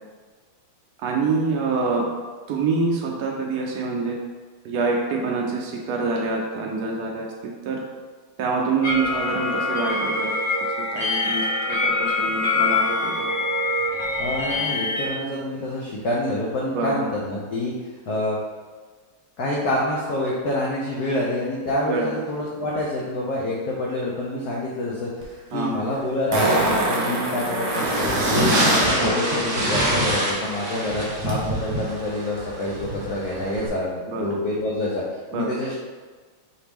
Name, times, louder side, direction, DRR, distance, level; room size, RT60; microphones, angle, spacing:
voice 1, 1.0-2.0 2.5-4.2 4.6-7.8 8.4-10.3 10.9-13.3 16.7-16.9 21.9-22.3 25.5-25.8 34.1-34.3 35.3-35.5, right 4 dB, 85° right, -1 dB, 0.8 m, -26 dB
sound 1, 8.8-15.1, left 2 dB, 50° left, 1.2 m, -24 dB
voice 2, 14.2-17.7 18.1-18.4 19.4-25.1 25.5-27.9 28.2-35.0 35.3-35.7, left 1 dB, 75° left, -5 dB, 0.9 m, -27 dB
Fart, 25.2-25.3 26.3-28.9 31.3-31.4, right 2 dB, 60° right, 1.7 m, -24 dB
sound 2, 27.7-33.7, right 1 dB, 45° right, 1.2 m, -25 dB
4.9 x 3.0 x 3.4 m, 1.4 s
omnidirectional pair, 2.4 m